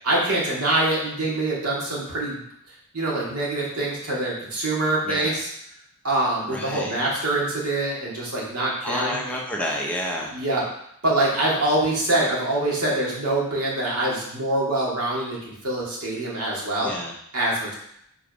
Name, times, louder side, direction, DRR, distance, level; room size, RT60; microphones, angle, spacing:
voice 1, 0.0-2.4 2.9-5.5 6.0-9.2 10.3-10.6 11.0-16.9 17.3-17.7, right 2 dB, 75° right, -5 dB, 2.1 m, -24 dB
voice 2, 5.0-5.3 6.5-6.9 8.8-10.3 16.8-17.1, left 1 dB, 5° left, -2 dB, 0.8 m, -29 dB
5.2 x 3.9 x 5.1 m, 0.72 s
head